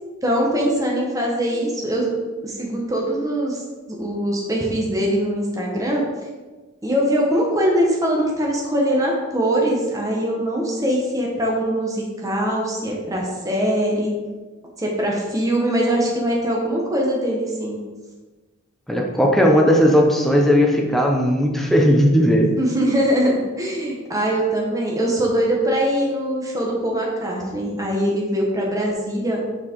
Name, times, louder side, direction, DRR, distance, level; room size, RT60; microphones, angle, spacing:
voice 1, 0.2-2.1 2.4-3.6 4.0-6.0 6.8-14.1 14.8-17.8 22.6-29.4, right 1 dB, 15° right, -2 dB, 1.2 m, -22 dB
voice 2, 18.9-22.5, equal, ahead, 0 dB, 0.7 m, -16 dB
6.2 x 4.7 x 4.6 m, 1.3 s
head